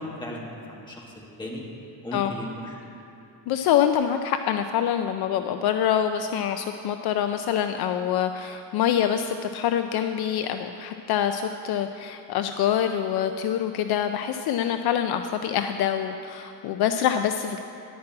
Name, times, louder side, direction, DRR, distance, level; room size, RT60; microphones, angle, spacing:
voice 1, 0.0-1.6 2.0-2.9, left 1 dB, 10° left, -3 dB, 1.7 m, -36 dB
voice 2, 3.5-17.6, left 9 dB, 60° left, 7 dB, 0.5 m, -25 dB
11.0 x 6.1 x 8.6 m, 2.7 s
cardioid pair, 150°, 43 cm